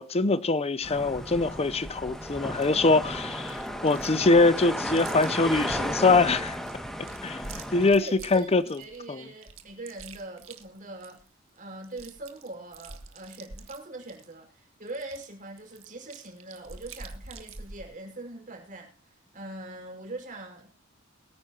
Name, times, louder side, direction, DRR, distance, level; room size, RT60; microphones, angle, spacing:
voice 1, 0.0-6.6 7.2-8.8 9.1-9.2, left 3 dB, 30° left, 0.7 m, -23 dB
sound 1, 0.8-7.9, equal, ahead, 2.0 m, -34 dB
Chewing mastication, 2.6-2.8 3.4-4.2 4.4-5.9 6.4-9.0 9.4-11.3 11.6-11.7 11.8-14.3 14.9-17.9, right 4 dB, 75° right, 1.8 m, -46 dB
voice 2, 7.9-8.5 8.8-11.2 11.6-20.7, right 2 dB, 40° right, 5.3 m, -42 dB
23.0 x 9.7 x 2.9 m
head